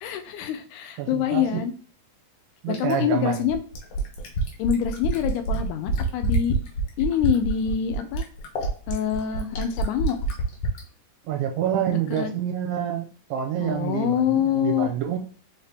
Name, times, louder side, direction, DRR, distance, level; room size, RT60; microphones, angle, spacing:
voice 1, 0.0-1.7 2.7-3.6 4.6-6.6 7.0-8.3 8.9-10.2 11.9-12.3 13.6-14.9, left 9 dB, 85° left, 8 dB, 2.1 m, -25 dB
voice 2, 1.0-1.6 2.6-3.5 11.3-13.1 13.3-15.2, right 9 dB, 80° right, 3 dB, 2.0 m, -27 dB
Fill (with liquid), 2.7-10.8 12.2-12.3, right 3 dB, 65° left, 1.5 m, -27 dB
4.8 x 2.8 x 3.4 m, 0.39 s
omnidirectional pair, 3.5 m